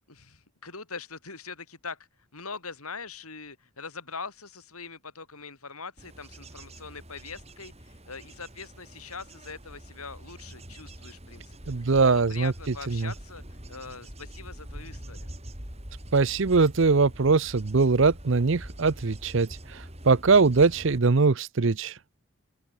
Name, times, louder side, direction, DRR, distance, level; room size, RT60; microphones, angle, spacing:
voice 1, 0.1-15.3, left 4 dB, 85° left, 7.9 m, -42 dB
Bird / Insect / Wind, 6.0-21.0, right 1 dB, 30° right, 5.4 m, -44 dB
voice 2, 11.7-12.5 12.9-13.1 16.1-19.5 20.0-21.9, right 4 dB, 60° right, 0.7 m, -21 dB
open air
head